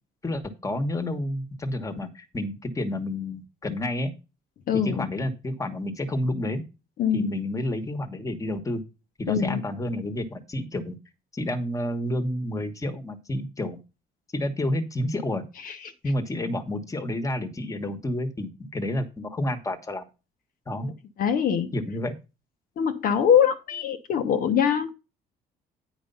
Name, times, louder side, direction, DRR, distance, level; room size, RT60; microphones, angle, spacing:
voice 1, 0.2-4.1 4.7-6.6 7.1-8.8 9.2-11.0 11.3-13.8 14.3-15.4 16.0-20.0 20.7-20.9 21.7-22.1, left 1 dB, 20° left, 10 dB, 1.3 m, -30 dB
voice 2, 4.7-5.1 7.0-7.3 9.3-9.6 15.6-15.9 21.2-21.7 22.8-24.9, left 8 dB, 60° left, 7 dB, 0.9 m, -23 dB
8.9 x 5.0 x 5.4 m, 0.29 s
cardioid pair, 110°, 17 cm